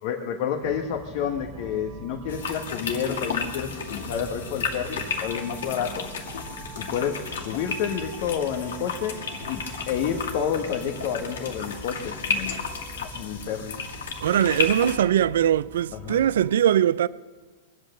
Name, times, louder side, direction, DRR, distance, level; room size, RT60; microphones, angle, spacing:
voice 1, 0.0-6.1 6.8-9.2 9.5-9.6 9.9-12.6 13.0-13.8 16.0-16.2, left 8 dB, 50° left, 1.4 m, -29 dB
sound 1, 0.6-16.6, right 3 dB, 25° right, 1.1 m, -43 dB
sound 2, 2.3-15.0, left 5 dB, 85° left, 2.2 m, -33 dB
voice 2, 14.2-17.1, right 10 dB, 80° right, 0.5 m, -21 dB
23.0 x 8.8 x 6.7 m
supercardioid pair, 140°, 0 cm